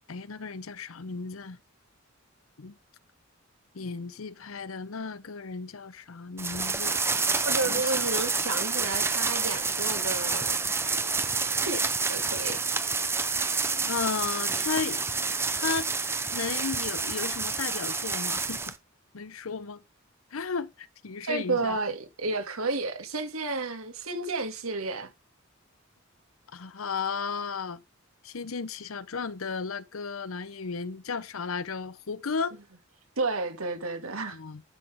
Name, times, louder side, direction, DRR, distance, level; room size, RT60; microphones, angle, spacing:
voice 1, 0.1-1.6 2.6-2.7 3.7-7.0 7.6-8.0 13.9-15.0 15.5-15.9 16.3-18.7 19.1-19.8 20.3-21.8 26.5-27.8 28.2-32.5 34.3-34.6, left 5 dB, 80° left, 0.8 m, -34 dB
sound 1, 6.4-18.8, right 4 dB, 10° right, 0.7 m, -28 dB
voice 2, 7.5-10.7 11.6-11.8 12.1-12.6 21.2-25.1 33.2-34.4, right 3 dB, 85° right, 2.4 m, -31 dB
11.5 x 6.2 x 3.7 m
head